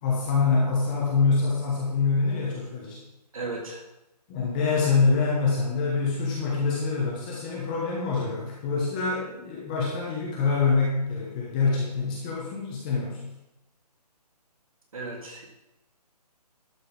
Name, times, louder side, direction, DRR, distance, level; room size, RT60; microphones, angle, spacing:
voice 1, 0.0-3.0 4.3-13.3, left 4 dB, 10° left, -4 dB, 1.1 m, -25 dB
voice 2, 3.3-3.8 14.9-15.5, right 3 dB, 55° right, -1 dB, 3.1 m, -35 dB
12.0 x 5.4 x 5.4 m, 0.94 s
hypercardioid pair, 170°, 21 cm